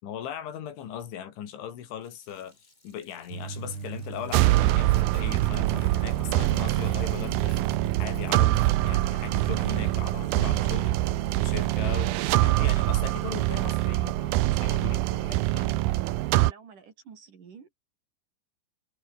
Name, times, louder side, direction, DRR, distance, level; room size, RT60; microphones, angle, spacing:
voice 1, 0.0-7.6 8.0-11.0 11.4-15.9, left 9 dB, 85° left, 5.3 m, -39 dB
Sink (filling or washing), 2.0-14.0, left 1 dB, 10° left, 4.1 m, -56 dB
sound 1, 3.3-11.7, right 4 dB, 30° right, 4.2 m, -40 dB
sound 2, 4.3-16.5, right 17 dB, 85° right, 2.0 m, -24 dB
voice 2, 15.5-17.7, right 6 dB, 50° right, 4.4 m, -50 dB
omnidirectional pair, 5.3 m